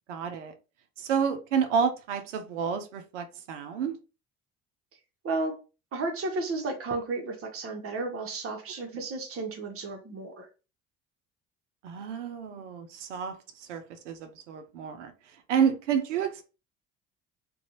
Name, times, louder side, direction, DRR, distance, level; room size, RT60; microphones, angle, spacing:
voice 1, 0.1-0.5 1.0-4.0 11.8-15.1 15.5-16.4, right 7 dB, 85° right, 0.5 m, -29 dB
voice 2, 5.2-5.6 5.9-10.5, right 3 dB, 40° right, 0.9 m, -33 dB
2.5 x 2.2 x 2.8 m
hypercardioid pair, 55°, 35 cm